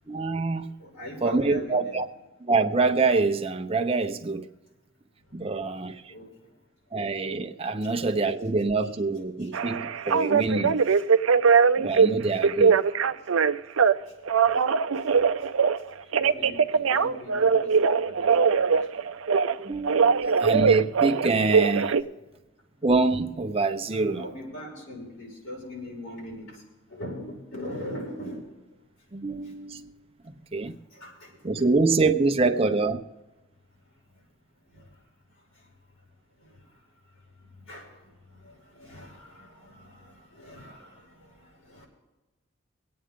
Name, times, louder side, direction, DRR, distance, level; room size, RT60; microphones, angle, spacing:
voice 1, 0.1-0.7 1.2-2.1 2.5-4.5 5.3-6.1 6.9-10.8 11.8-12.8 19.6-22.0 22.8-24.3 29.1-29.9 30.5-30.7 31.4-33.0, right 3 dB, 30° right, 0.8 m, -25 dB
voice 2, 0.8-2.1 6.1-6.3 7.7-7.9 8.8-8.9 9.4-9.5 10.1-10.3 10.8-11.0 12.3-12.4 12.8-13.1 14.9-15.3 16.1-18.9 23.9-26.6 26.9-28.4 30.9-31.3 34.7-34.9 36.4-36.6 37.6-41.9, left 1 dB, 75° left, 5.5 m, -42 dB
Telephone, 9.5-12.1 12.4-13.9 14.3-15.8 16.1-19.6 19.8-22.0, right 6 dB, 85° right, 0.6 m, -21 dB
24.0 x 8.8 x 3.7 m
head